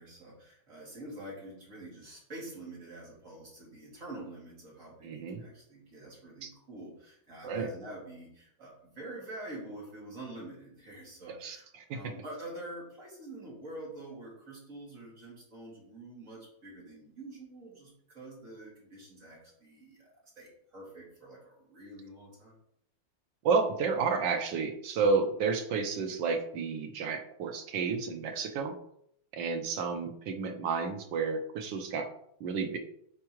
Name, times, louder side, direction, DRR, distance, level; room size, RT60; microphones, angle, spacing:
voice 1, 0.0-22.5, right 1 dB, 40° right, -5 dB, 2.8 m, -46 dB
voice 2, 5.0-5.4 6.4-6.5 7.4-7.7 11.3-11.6 11.9-12.0 23.4-28.7 29.3-32.1 32.4-32.8, right 5 dB, 75° right, 6 dB, 1.4 m, -31 dB
8.4 x 4.4 x 3.1 m, 0.71 s
omnidirectional pair, 2.1 m